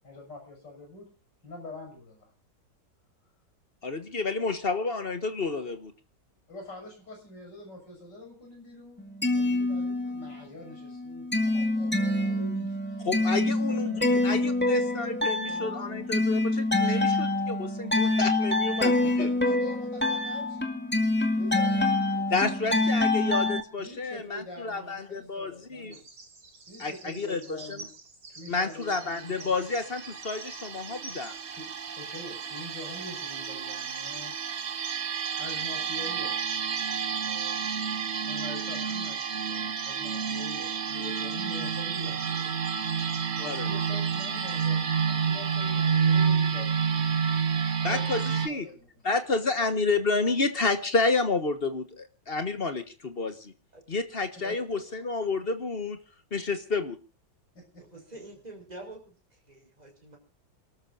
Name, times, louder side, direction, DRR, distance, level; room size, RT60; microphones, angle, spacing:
voice 1, 0.0-1.1 1.4-2.3 6.5-14.8 15.4-16.2 19.0-20.7 21.4-22.5 22.8-23.1 23.8-26.0 26.7-27.9 28.3-29.6 31.5-31.7 31.9-34.3 35.3-36.4 37.2-37.6 38.2-42.6 43.4-46.8 47.8-49.1 57.6-57.8, left 1 dB, 75° left, 2 dB, 7.0 m, -45 dB
voice 2, 3.8-5.9 13.0-19.3 22.3-26.0 26.8-27.8 28.5-31.3 43.4-43.7 47.8-48.7 49.0-53.5 53.9-56.0 56.3-57.0, left 3 dB, 35° left, 10 dB, 1.4 m, -30 dB
sound 1, 9.0-10.4 10.8-23.6, left 2 dB, 5° left, 2.0 m, -26 dB
voice 3, 21.5-21.9 53.7-53.8 54.4-54.8 57.8-60.2, right 2 dB, 20° right, 1 dB, 5.4 m, -46 dB
Bird vocalization bird call bird song, 25.9-44.7, right 3 dB, 85° right, 4.4 m, -49 dB
sound 2, 28.8-48.5, right 6 dB, 45° right, 1.1 m, -30 dB
28.5 x 13.5 x 2.6 m, 0.33 s
omnidirectional pair, 1.9 m